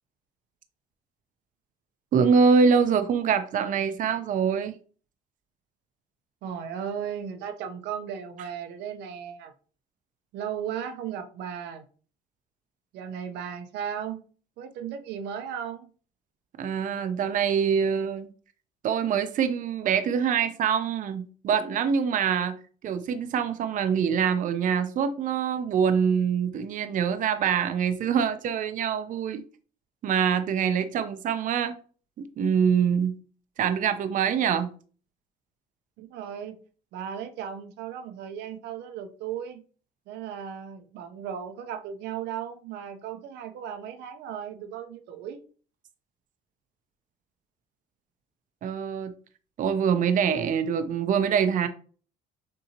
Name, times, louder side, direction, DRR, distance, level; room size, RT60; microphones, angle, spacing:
voice 1, 2.1-4.8 16.6-18.3 18.8-22.6 22.8-29.4 30.0-31.7 32.2-33.1 33.6-34.7 48.6-49.1 49.6-51.7, right 7 dB, 50° right, 0.6 m, -24 dB
voice 2, 6.4-9.5 10.3-11.8 12.9-14.2 14.6-15.9 36.0-36.6 36.9-39.6 40.1-45.4, right 8 dB, 85° right, 0.8 m, -36 dB
6.5 x 2.8 x 2.8 m
cardioid pair, 110°, 17 cm